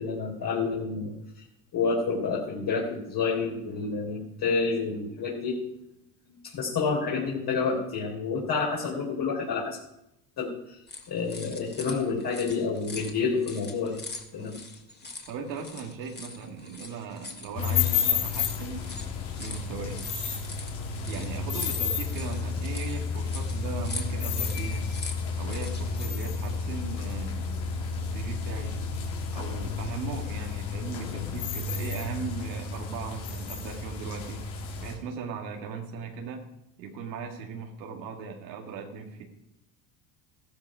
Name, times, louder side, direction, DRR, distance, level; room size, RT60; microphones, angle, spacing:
voice 1, 0.0-1.4 1.7-5.7 6.3-9.8 10.4-10.8 11.1-14.0 14.3-14.6, left 4 dB, 50° left, -3 dB, 4.0 m, -29 dB
sound 1, 10.9-26.1, left 3 dB, 20° left, 2.5 m, -43 dB
voice 2, 15.3-18.9 19.4-20.0 21.1-24.9 25.4-27.6 28.0-28.8 29.3-36.4 36.8-39.2, right 5 dB, 90° right, 1 dB, 2.4 m, -38 dB
sound 2, 17.5-34.9, left 5 dB, 80° left, 4.0 m, -31 dB
14.5 x 13.0 x 5.0 m, 0.85 s
supercardioid pair, 85°, 50 cm